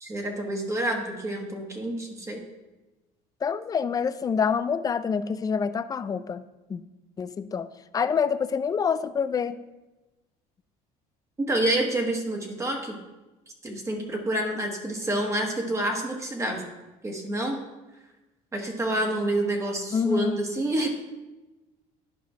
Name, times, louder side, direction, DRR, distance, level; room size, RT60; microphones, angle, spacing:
voice 1, 0.0-2.4 11.4-12.9 13.6-16.7 17.0-17.6 18.5-20.9, right 1 dB, 20° right, 2 dB, 1.4 m, -28 dB
voice 2, 3.4-6.4 6.7-6.8 7.2-7.7 7.9-9.6 19.9-20.4, left 6 dB, 25° left, 13 dB, 0.4 m, -26 dB
10.5 x 5.0 x 4.8 m, 1.1 s
cardioid pair, 120°, 16 cm